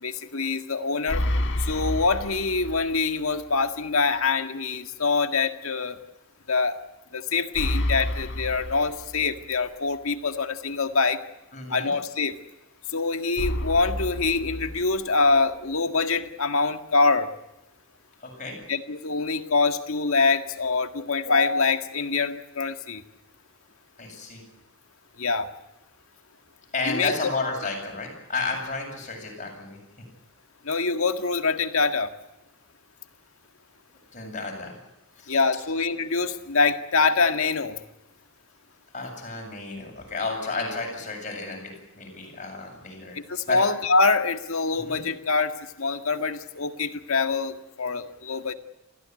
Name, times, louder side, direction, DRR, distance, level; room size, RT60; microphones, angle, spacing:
voice 1, 0.0-1.3 1.6-6.0 6.5-6.8 7.1-11.2 11.7-12.4 12.9-17.3 18.7-23.0 25.2-25.5 26.8-27.3 30.6-32.1 35.3-37.8 43.1-45.5 45.8-48.5, left 4 dB, 80° left, 7 dB, 1.8 m, -25 dB
sound 1, 1.1-3.1 3.4-3.5 7.5-9.5 13.4-15.3, left 1 dB, 55° left, 1.7 m, -29 dB
voice 2, 11.5-11.9 18.2-18.6 24.0-24.4 26.7-29.8 34.1-34.7 35.2-35.4 38.9-43.2 43.5-43.6 44.8-45.0, left 3 dB, 35° left, 1 dB, 7.8 m, -32 dB
27.5 x 15.5 x 9.6 m, 0.96 s
head